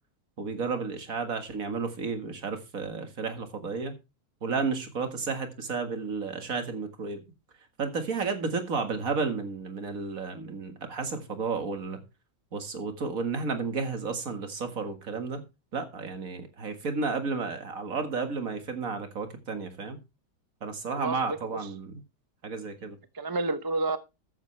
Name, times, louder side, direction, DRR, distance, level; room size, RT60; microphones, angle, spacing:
voice 1, 0.4-3.9 4.4-7.2 7.8-12.0 12.5-15.4 15.7-20.0 20.6-22.0 22.4-23.0, right 4 dB, 55° right, 2.1 m, -32 dB
voice 2, 20.9-21.6 23.1-24.0, right 2 dB, 20° right, 0.6 m, -30 dB
13.5 x 9.7 x 3.3 m
omnidirectional pair, 1.8 m